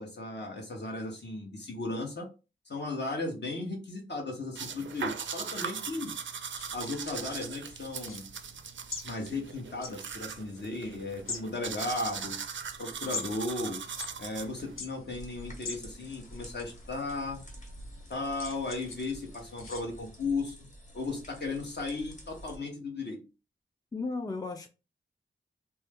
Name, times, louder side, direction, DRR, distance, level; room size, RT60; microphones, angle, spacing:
voice 1, 0.0-2.3 2.7-6.1 6.7-8.2 9.0-12.4 12.8-13.8 14.2-17.4 18.1-20.7 20.9-23.2, left 2 dB, 55° left, 1.1 m, -35 dB
sound 1, 4.6-14.8, right 6 dB, 65° right, 0.4 m, -40 dB
sound 2, 6.5-19.8, left 4 dB, 85° left, 0.6 m, -46 dB
sound 3, 15.1-22.6, equal, 35° left, 1.4 m, -49 dB
voice 2, 23.9-24.7, left 3 dB, 20° left, 0.4 m, -34 dB
2.7 x 2.2 x 3.4 m
wide cardioid pair, 60°, 21 cm